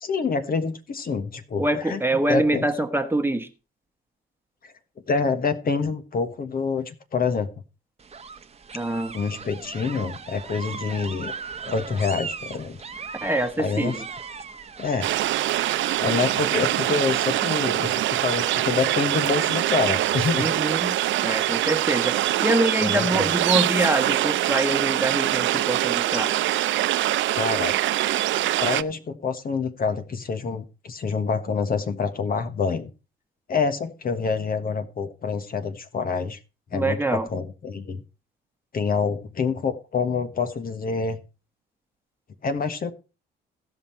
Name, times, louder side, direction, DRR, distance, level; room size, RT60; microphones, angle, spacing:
voice 1, 0.0-2.0 2.3-2.6 4.6-4.7 5.1-7.5 9.1-11.3 11.7-12.8 13.6-13.9 14.8-15.1 16.0-20.6 22.8-23.2 27.3-27.8 28.6-32.9 33.5-36.4 36.7-38.0 38.7-41.2 42.4-42.9, left 5 dB, 45° left, 1.3 m, -26 dB
voice 2, 1.6-3.5 8.7-9.1 13.2-14.0 20.4-21.0 21.2-26.3 36.7-37.3, right 1 dB, 10° right, 1.3 m, -25 dB
sound 1, 8.0-16.6, right 5 dB, 30° right, 1.0 m, -38 dB
sound 2, 15.0-28.8, right 14 dB, 75° right, 0.5 m, -24 dB
16.5 x 5.7 x 4.5 m
cardioid pair, 90°, 20 cm